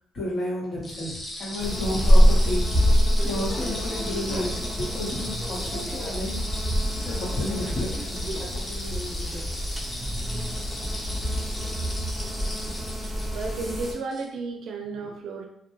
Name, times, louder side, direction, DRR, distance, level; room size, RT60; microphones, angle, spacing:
voice 1, 0.1-2.8 3.2-6.4 7.0-9.5, left 1 dB, 60° left, -5 dB, 1.0 m, -32 dB
sound 1, 0.8-14.2, left 1 dB, 25° left, 0.7 m, -37 dB
sound 2, 1.6-13.9, equal, 10° right, 0.5 m, -25 dB
voice 2, 13.3-15.5, right 3 dB, 70° right, 3 dB, 0.4 m, -33 dB
2.1 x 2.1 x 2.9 m, 0.75 s
cardioid pair, 90°, 0 cm